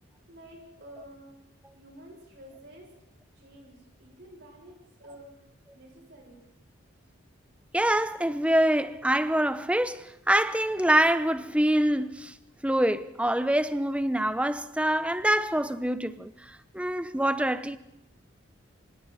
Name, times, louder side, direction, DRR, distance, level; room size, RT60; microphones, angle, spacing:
voice 1, 0.3-1.3 1.7-2.9 3.3-4.7 5.0-6.5, right 1 dB, 55° right, 7.2 m, -50 dB
voice 2, 7.7-12.4 12.6-17.8, right 1 dB, 5° right, 0.7 m, -25 dB
27.5 x 26.5 x 4.2 m
head